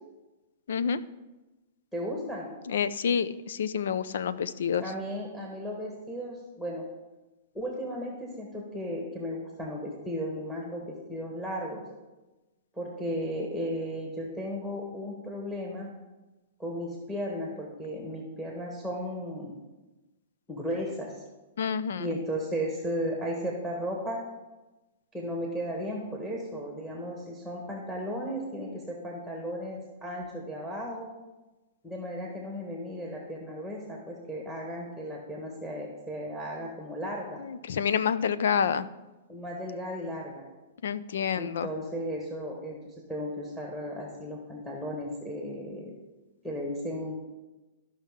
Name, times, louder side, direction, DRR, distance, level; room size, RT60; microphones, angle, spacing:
voice 1, 0.7-1.0 2.7-4.8 21.6-22.1 37.4-38.9 40.8-41.7, left 7 dB, 75° left, 15 dB, 0.5 m, -28 dB
voice 2, 1.9-2.5 4.8-6.8 7.5-11.9 12.7-15.9 16.6-19.6 20.5-21.2 22.0-24.2 25.1-31.1 31.8-37.4 39.3-40.5 41.3-42.8 43.1-45.9 46.4-47.2, equal, 5° left, -1 dB, 1.5 m, -35 dB
13.5 x 5.5 x 3.6 m, 1.1 s
hypercardioid pair, 145°, 0 cm